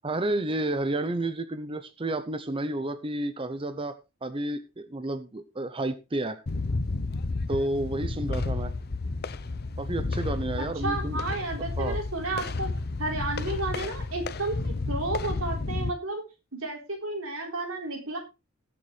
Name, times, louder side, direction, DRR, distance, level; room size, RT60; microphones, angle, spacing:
voice 1, 0.0-6.4 7.5-8.7 9.8-11.2 11.6-12.0, right 1 dB, 25° right, 10 dB, 0.7 m, -31 dB
sound 1, 6.5-15.9, left 3 dB, 50° left, 0.7 m, -31 dB
voice 2, 10.8-12.7 13.0-16.2 16.6-18.2, right 2 dB, 85° right, 2 dB, 3.8 m, -32 dB
20.0 x 7.0 x 3.3 m, 0.27 s
head